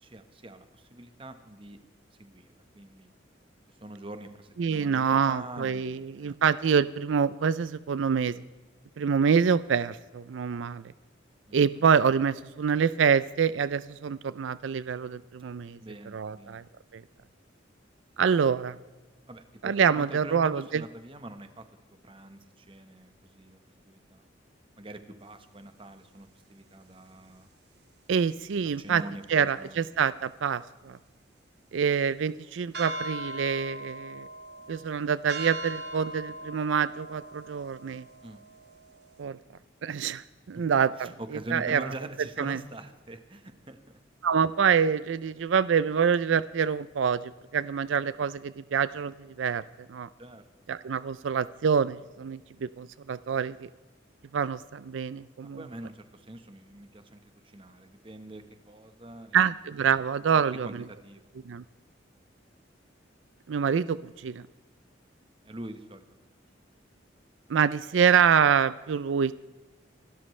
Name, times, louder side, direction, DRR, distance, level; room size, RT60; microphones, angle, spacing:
voice 1, 0.0-1.8 2.2-3.1 3.7-6.4 11.5-11.8 15.8-16.6 19.3-21.7 22.0-23.6 23.8-24.2 24.8-27.5 28.8-29.9 38.2-38.4 40.5-40.6 41.0-44.0 50.2-50.5 55.4-59.6 60.3-61.3 65.4-66.1, right 1 dB, 30° right, 8 dB, 1.2 m, -44 dB
voice 2, 4.6-8.4 9.0-10.8 11.5-15.8 16.1-16.6 16.9-17.0 18.2-18.8 19.6-20.8 28.1-29.0 29.3-31.0 31.7-34.3 34.7-38.0 39.2-39.4 39.8-41.1 41.5-41.8 42.4-42.6 44.2-47.2 47.5-49.6 49.9-50.1 50.7-53.7 54.3-55.6 59.3-60.7 61.5-61.6 63.5-64.4 67.5-69.3, right 7 dB, 80° right, 16 dB, 0.4 m, -26 dB
sound 1, 32.7-39.2, right 1 dB, 60° right, 2.2 m, -40 dB
26.5 x 13.0 x 3.2 m, 1.2 s
head